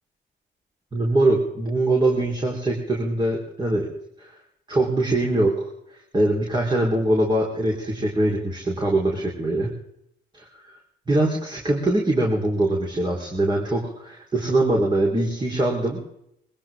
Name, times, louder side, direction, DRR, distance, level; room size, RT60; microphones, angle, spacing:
voice 1, 0.9-3.9 4.2-4.3 4.7-5.5 6.1-9.7 11.1-16.0, right 1 dB, 20° right, -2 dB, 4.5 m, -22 dB
23.0 x 15.5 x 3.9 m, 0.77 s
cardioid pair, 90°, 20 cm